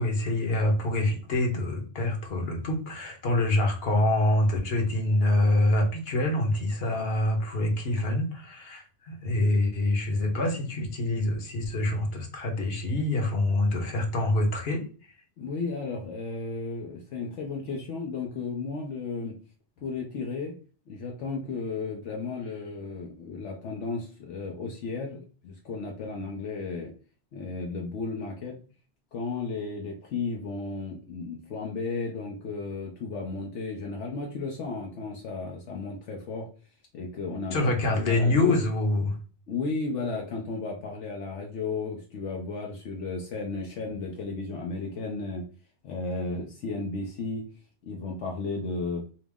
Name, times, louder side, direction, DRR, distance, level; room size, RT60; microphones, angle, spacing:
voice 1, 0.0-14.8 37.5-39.2, left 1 dB, 55° left, 2 dB, 1.2 m, -26 dB
voice 2, 15.4-19.4 19.8-20.5 20.9-26.9 27.3-28.6 29.1-36.5 36.9-38.6 39.5-45.4 45.8-47.4 47.8-49.0, left 4 dB, 75° left, 0 dB, 1.0 m, -34 dB
5.0 x 2.0 x 3.5 m, 0.39 s
omnidirectional pair, 1.2 m